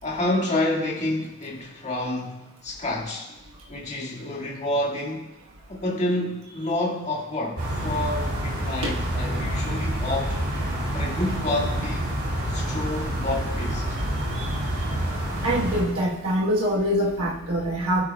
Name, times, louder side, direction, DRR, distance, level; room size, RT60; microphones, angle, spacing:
voice 1, 0.0-3.3 3.7-5.3 5.7-10.4 10.9-12.1 12.5-13.8, left 1 dB, 30° left, 2.0 m, -28 dB
sound 1, 7.6-15.8, right 1 dB, 50° right, 3.6 m, -27 dB
voice 2, 15.4-18.0, equal, 65° right, 1.3 m, -24 dB
17.5 x 9.5 x 2.3 m
head